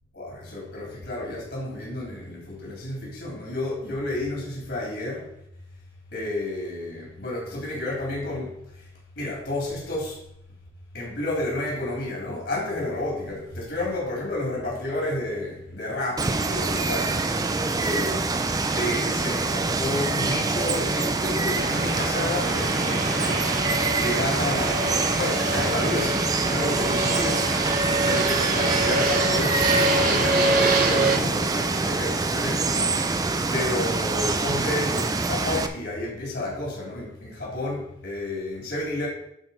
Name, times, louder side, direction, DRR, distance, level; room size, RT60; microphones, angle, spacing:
voice 1, 0.1-5.3 6.1-8.9 9.2-10.2 10.9-17.3 17.8-18.3 18.7-23.5 24.0-27.5 27.9-32.9 33.5-39.1, left 1 dB, 65° left, -4 dB, 3.2 m, -31 dB
Water, 16.2-35.7, right 3 dB, 20° right, 0.4 m, -25 dB
Fixed-wing aircraft airplane, 21.6-31.2, right 2 dB, 45° right, 1.1 m, -26 dB
11.5 x 4.4 x 4.3 m, 0.78 s
head